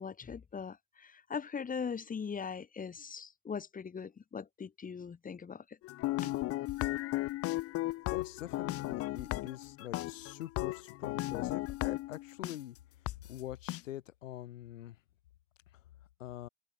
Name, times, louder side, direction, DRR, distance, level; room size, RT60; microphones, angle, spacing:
voice 1, 0.0-5.8 6.2-6.3, left 6 dB, 20° left, 1.3 m, -40 dB
sound 1, 5.8-12.6 13.1-13.2 13.7-13.8, left 17 dB, 35° left, 0.6 m, -35 dB
voice 2, 8.1-12.8 13.3-15.0 16.2-16.5, left 13 dB, 70° left, 2.9 m, -44 dB
figure-of-eight pair, 60°, 40 cm